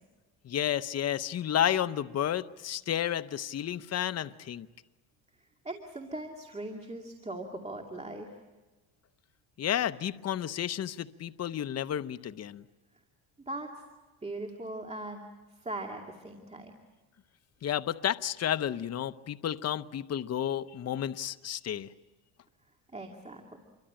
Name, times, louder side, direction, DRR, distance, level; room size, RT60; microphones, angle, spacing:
voice 1, 0.4-4.7 9.6-12.6 17.6-21.9, left 10 dB, 35° left, 0.8 m, -31 dB
voice 2, 5.6-8.4 13.5-13.7 14.2-15.3 15.6-16.8 22.9-23.6, right 2 dB, 15° right, 2.5 m, -40 dB
27.5 x 24.0 x 8.9 m
cardioid pair, 125°, 46 cm